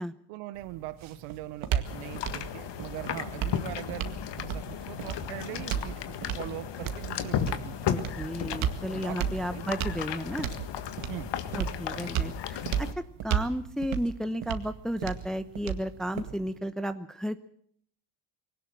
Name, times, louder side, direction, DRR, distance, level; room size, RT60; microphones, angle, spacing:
voice 1, 0.3-4.1 4.4-7.9 9.0-9.2 9.5-9.7 11.1-11.3 11.9-12.2, right 16 dB, 90° right, 12 dB, 1.0 m, -41 dB
sound 1, 0.6-16.6, right 9 dB, 70° right, 2.1 m, -35 dB
sound 2, 1.8-12.9, left 9 dB, 55° left, 1.7 m, -35 dB
voice 2, 7.9-10.5 11.5-17.4, equal, ahead, 10 dB, 0.9 m, -33 dB
20.0 x 18.0 x 7.7 m, 0.63 s
cardioid pair, 90°, 50 cm